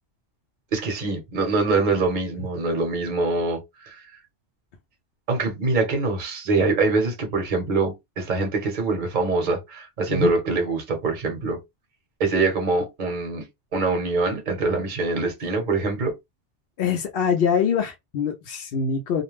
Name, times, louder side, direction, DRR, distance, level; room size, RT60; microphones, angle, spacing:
voice 1, 0.7-4.0 5.3-11.6 12.2-13.4 13.7-16.1, right 3 dB, 45° right, 0.9 m, -24 dB
voice 2, 16.8-19.2, left 6 dB, 60° left, 0.7 m, -24 dB
2.4 x 2.1 x 3.1 m
omnidirectional pair, 1.2 m